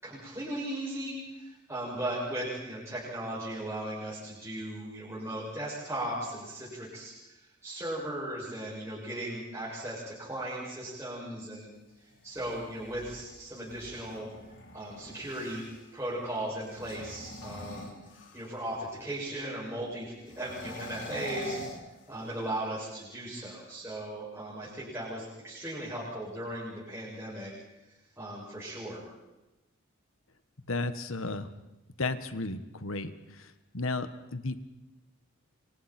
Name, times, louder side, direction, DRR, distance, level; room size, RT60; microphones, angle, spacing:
voice 1, 0.0-7.3 7.6-11.7 12.2-14.3 14.7-15.6 15.9-17.9 18.3-21.6 22.1-27.5 28.2-29.0, right 1 dB, 15° right, -7 dB, 6.8 m, -37 dB
sound 1, 12.1-15.9 16.6-18.7 20.2-22.5, left 1 dB, 55° left, 4.1 m, -45 dB
voice 2, 30.7-31.5 32.0-33.1 33.4-34.5, left 3 dB, 75° left, 10 dB, 1.5 m, -33 dB
29.0 x 26.0 x 4.5 m, 0.99 s
head